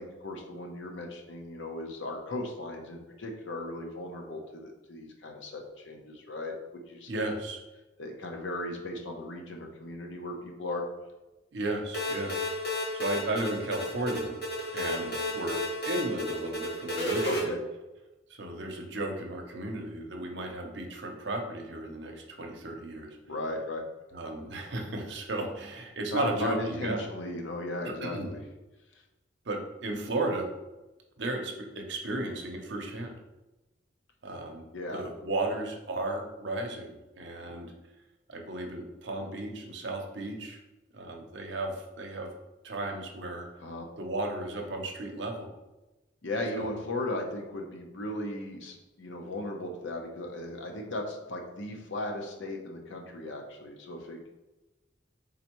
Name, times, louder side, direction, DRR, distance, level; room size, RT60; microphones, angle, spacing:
voice 1, 0.0-7.2 8.0-10.8 17.2-17.6 23.3-23.8 26.1-28.4 34.7-35.0 43.6-43.9 46.2-54.3, left 2 dB, 70° left, 2 dB, 0.7 m, -36 dB
voice 2, 7.1-7.6 11.5-12.3 12.9-14.4 14.7-17.4 18.3-23.2 24.1-27.1 28.0-28.3 29.5-30.5 31.2-33.1 34.2-34.7 34.9-37.7 38.3-40.6 40.9-42.3 42.6-43.5 44.0-45.5 46.5-46.7, right 2 dB, 60° right, 3 dB, 0.7 m, -34 dB
sound 1, 11.9-17.4, left 1 dB, 55° left, 1.4 m, -32 dB
4.4 x 3.8 x 3.0 m, 1.1 s
head